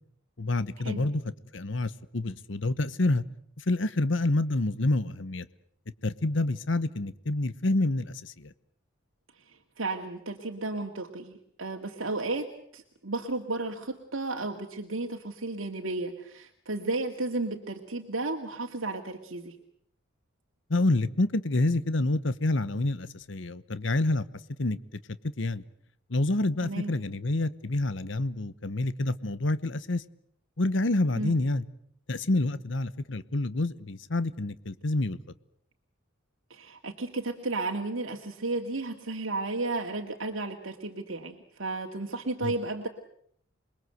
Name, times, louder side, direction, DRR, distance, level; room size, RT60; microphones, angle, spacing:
voice 1, 0.4-1.2 1.5-3.2 3.6-5.5 6.0-8.5 20.7-24.2 24.6-24.8 25.4-25.6 26.1-30.0 30.6-31.6 32.1-35.2 42.4-42.5, left 2 dB, 65° left, 15 dB, 1.1 m, -28 dB
voice 2, 9.4-19.6 26.6-26.9 31.2-31.4 36.5-42.9, right 2 dB, 80° right, 3 dB, 2.2 m, -33 dB
28.0 x 22.0 x 7.9 m, 0.66 s
head